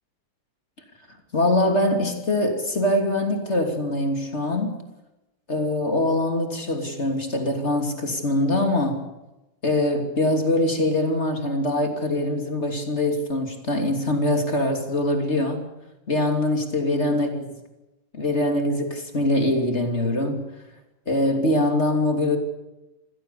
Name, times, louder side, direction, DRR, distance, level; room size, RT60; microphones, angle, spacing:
voice 1, 1.3-4.7 5.5-9.0 9.6-15.6 16.1-17.4 18.1-20.4 21.1-22.4, left 1 dB, 20° left, 4 dB, 2.7 m, -23 dB
27.0 x 16.5 x 8.5 m, 0.99 s
omnidirectional pair, 4.2 m